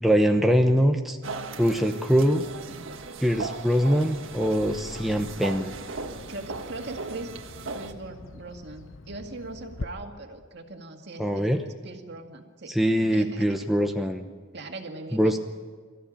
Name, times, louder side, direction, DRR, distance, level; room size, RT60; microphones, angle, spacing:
voice 1, 0.0-1.2 1.6-2.4 3.2-5.7 11.2-11.6 12.7-14.3 15.1-15.4, equal, ahead, 3 dB, 0.8 m, -23 dB
sound 1, 1.2-7.9, right 3 dB, 70° right, 1.6 m, -37 dB
Bird vocalization bird call bird song, 4.1-9.8, left 2 dB, 70° left, 0.9 m, -44 dB
voice 2, 6.3-7.3 7.7-12.7 13.0-13.6 14.5-15.4, right 2 dB, 55° right, 3 dB, 2.2 m, -40 dB
24.5 x 14.5 x 8.8 m, 1.5 s
head